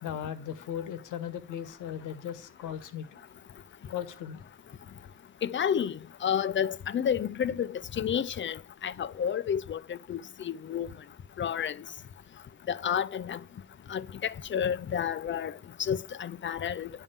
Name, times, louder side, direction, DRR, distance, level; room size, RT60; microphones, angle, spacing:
voice 1, 0.0-3.1 3.9-4.4, left 9 dB, 85° left, 1.2 m, -37 dB
voice 2, 5.4-10.9 11.4-11.8 12.7-13.4 13.9-16.9, left 8 dB, 40° left, 0.5 m, -31 dB
10.5 x 3.7 x 7.1 m
cardioid pair, 90°, 30 cm